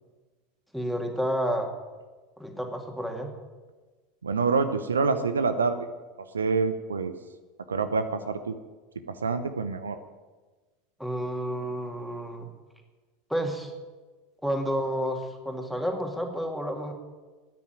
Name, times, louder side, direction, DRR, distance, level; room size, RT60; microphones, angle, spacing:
voice 1, 0.7-1.7 2.4-3.3 11.0-12.5 13.3-13.7 14.4-16.9, equal, ahead, 3 dB, 2.5 m, -30 dB
voice 2, 4.2-5.8 6.3-7.1 7.7-8.5 9.1-10.0, right 4 dB, 75° right, 10 dB, 0.8 m, -26 dB
13.0 x 9.8 x 9.0 m, 1.3 s
figure-of-eight pair, 80°, 0 cm